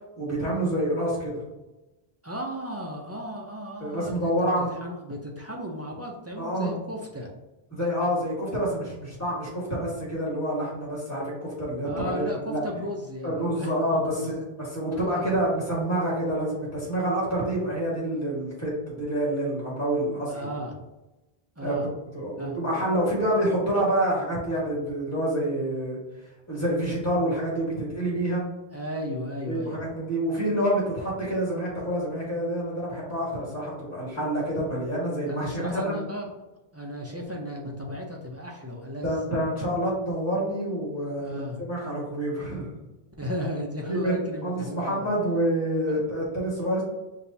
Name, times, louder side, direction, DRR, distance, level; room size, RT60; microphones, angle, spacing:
voice 1, 0.2-1.3 3.8-4.7 6.4-6.7 7.7-12.6 13.2-14.1 14.7-20.5 21.6-21.7 22.1-26.0 26.5-28.4 29.5-35.9 39.0-42.7 43.9-46.8, right 1 dB, 15° left, -5 dB, 1.5 m, -27 dB
voice 2, 2.2-4.3 4.6-7.3 11.9-14.2 14.9-15.3 20.3-20.8 21.6-21.9 22.4-22.6 28.7-29.8 35.3-36.3 36.7-39.2 41.2-41.6 43.2-45.1 45.9-46.0, equal, 25° right, -1 dB, 0.4 m, -35 dB
6.0 x 2.7 x 2.7 m, 1.0 s
omnidirectional pair, 1.0 m